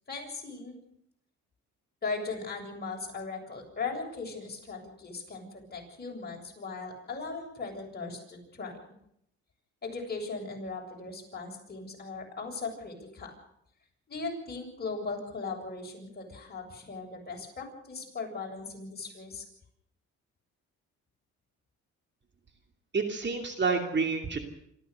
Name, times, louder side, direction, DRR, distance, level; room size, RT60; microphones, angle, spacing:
voice 1, 0.1-0.8 2.0-8.7 9.8-13.3 14.1-19.4, left 4 dB, 30° left, 1 dB, 7.5 m, -38 dB
voice 2, 22.9-24.4, right 4 dB, 35° right, 4 dB, 2.7 m, -28 dB
26.5 x 14.5 x 6.8 m, 0.74 s
cardioid pair, 90°, 30 cm